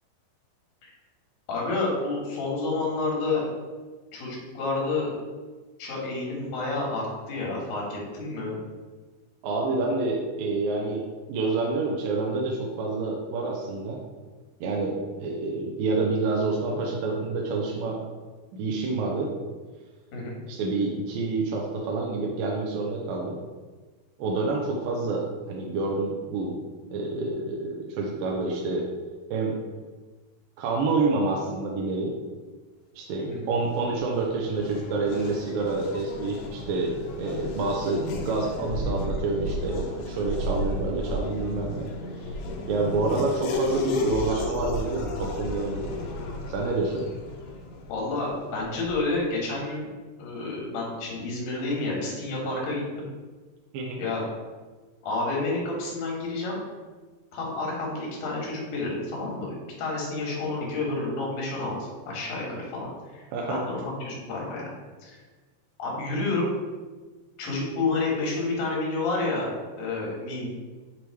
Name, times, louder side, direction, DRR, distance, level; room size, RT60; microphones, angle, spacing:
voice 1, 1.5-3.4 4.1-5.1 5.8-8.5 20.1-20.4 33.3-33.4 47.9-49.9 50.2-53.1 54.0-54.2 55.0-56.6 57.3-61.7 62.1-64.7 65.0-65.2 65.8-66.5 67.4-69.5 69.8-70.5, left 3 dB, 70° left, -3 dB, 3.1 m, -29 dB
voice 2, 9.4-11.0 11.3-14.0 14.6-18.0 18.5-19.3 20.5-23.4 24.2-26.6 26.9-28.9 29.3-29.6 30.6-32.2 32.9-42.3 42.7-45.9 46.5-47.1 53.7-54.0 63.3-63.6, right 3 dB, 80° right, -2 dB, 2.2 m, -28 dB
Race car auto racing / Accelerating revving vroom, 33.6-49.2, left 2 dB, 90° left, 2.7 m, -33 dB
6.9 x 3.1 x 4.6 m, 1.3 s
omnidirectional pair, 4.4 m